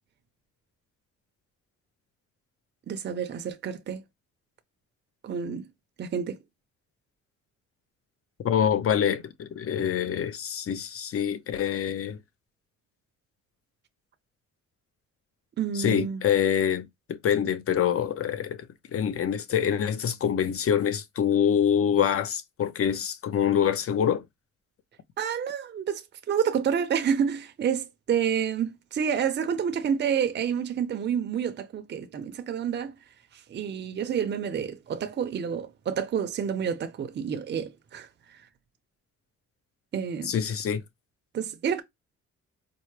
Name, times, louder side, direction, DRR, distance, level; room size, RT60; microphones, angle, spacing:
voice 1, 2.9-4.0 5.2-5.7 6.0-6.4 15.6-16.2 25.2-26.0 26.3-33.0 33.3-38.4 39.9-40.3 41.3-41.8, right 7 dB, 35° right, 0.6 m, -29 dB
voice 2, 8.4-12.2 15.7-18.7 18.9-24.2 40.2-40.8, left 8 dB, 50° left, 0.6 m, -25 dB
4.4 x 2.0 x 3.2 m
cardioid pair, 90°, 30 cm